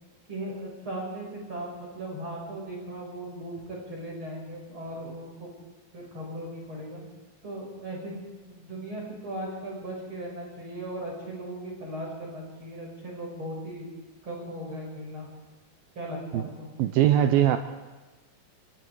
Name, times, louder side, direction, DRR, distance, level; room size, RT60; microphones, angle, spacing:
voice 1, 0.3-5.5 5.9-7.0 7.4-13.9 14.2-15.3 15.9-16.7, right 1 dB, 30° right, -2 dB, 6.1 m, -37 dB
voice 2, 16.8-17.6, right 11 dB, 80° right, 9 dB, 2.2 m, -21 dB
28.0 x 19.5 x 4.8 m, 1.2 s
omnidirectional pair, 5.0 m